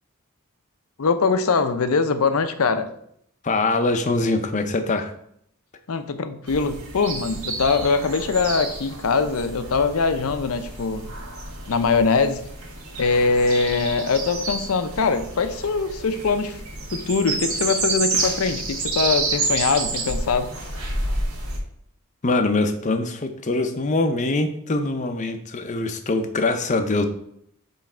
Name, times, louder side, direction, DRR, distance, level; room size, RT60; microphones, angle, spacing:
voice 1, 1.0-2.9 5.9-11.1 11.7-12.5 13.0-16.6 16.9-20.5, left 4 dB, 80° left, 10 dB, 0.6 m, -22 dB
voice 2, 3.4-5.1 22.2-27.0, left 2 dB, 35° left, 7 dB, 0.5 m, -23 dB
sound 1, 6.5-21.6, right 2 dB, 90° right, 1.5 m, -29 dB
7.2 x 3.1 x 4.4 m, 0.70 s
head